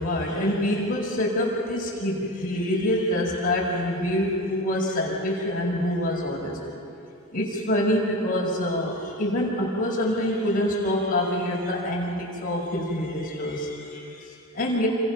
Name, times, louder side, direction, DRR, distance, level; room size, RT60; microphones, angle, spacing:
voice 1, 0.0-6.6 7.3-14.9, left 1 dB, 40° left, -2 dB, 5.9 m, -26 dB
28.5 x 26.0 x 6.1 m, 2.6 s
head